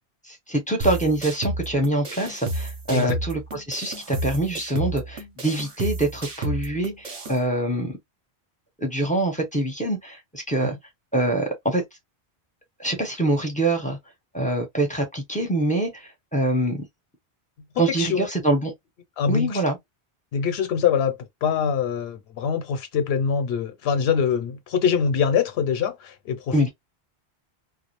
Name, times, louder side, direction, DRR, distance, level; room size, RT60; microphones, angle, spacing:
voice 1, 0.2-7.9 8.8-10.7 11.1-11.8 12.8-14.0 14.3-16.8 17.8-18.7 19.3-19.8 26.5-26.7, right 1 dB, 10° left, 0.6 m, -25 dB
sound 1, 0.8-7.4, right 1 dB, 40° right, 0.7 m, -31 dB
voice 2, 19.2-19.6 20.3-21.2 21.4-26.7, left 7 dB, 75° left, 0.9 m, -24 dB
2.3 x 2.0 x 2.9 m
omnidirectional pair, 1.1 m